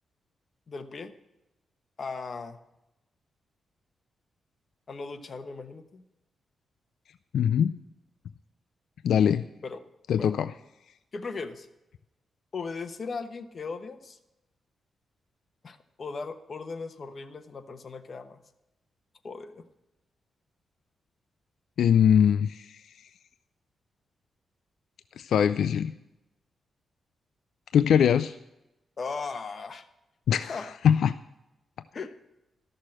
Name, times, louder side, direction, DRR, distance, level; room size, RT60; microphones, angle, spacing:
voice 1, 0.7-1.1 2.0-2.6 4.9-6.0 9.6-9.8 10.2-10.3 11.1-11.7 12.5-14.2 15.6-18.4 19.2-19.6 29.0-29.9 30.5-30.7 31.9-32.2, left 4 dB, 45° left, 8 dB, 1.1 m, -37 dB
voice 2, 7.3-7.8 9.0-9.4 10.1-10.5 21.8-22.8 25.2-25.9 27.7-28.4 30.3-31.2, left 8 dB, 80° left, 12 dB, 0.4 m, -22 dB
13.0 x 6.5 x 7.6 m, 0.92 s
cardioid pair, 95°, 0 cm